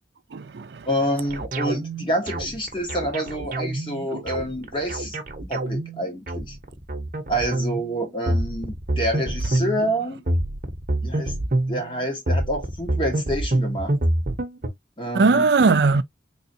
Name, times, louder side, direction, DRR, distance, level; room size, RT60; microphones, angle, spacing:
voice 1, 0.3-0.9 4.1-4.2 15.1-16.0, right 4 dB, 70° right, 0.5 m, -19 dB
voice 2, 0.9-5.2 5.5-6.5 7.3-10.2 11.0-11.3 11.7-13.9 15.0-15.5, equal, 25° left, 1.3 m, -27 dB
sound 1, 1.3-14.7, right 1 dB, 45° right, 0.9 m, -27 dB
3.8 x 3.1 x 2.7 m
head